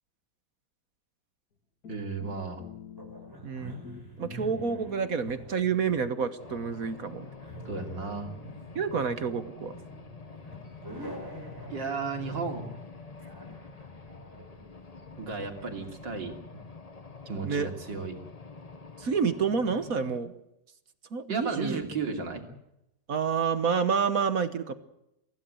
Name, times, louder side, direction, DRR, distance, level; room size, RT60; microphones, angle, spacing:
sound 1, 1.8-3.6 3.8-5.4 5.9-8.5, left 7 dB, 55° left, 2.4 m, -48 dB
voice 1, 1.9-2.7 7.7-8.3 11.7-12.7 15.2-16.3 17.3-18.1 21.3-22.5, right 4 dB, 85° right, 3 dB, 3.6 m, -34 dB
sound 2, 3.0-15.6, equal, 10° right, 5.8 m, -47 dB
voice 2, 3.4-3.8 4.2-7.3 8.7-9.7 17.4-17.7 19.0-20.3 21.1-21.8 23.1-24.7, right 6 dB, 55° right, 11 dB, 1.6 m, -28 dB
sound 3, 6.4-20.2, left 4 dB, 25° left, 1.1 m, -47 dB
25.0 x 16.0 x 7.9 m, 0.84 s
omnidirectional pair, 1.9 m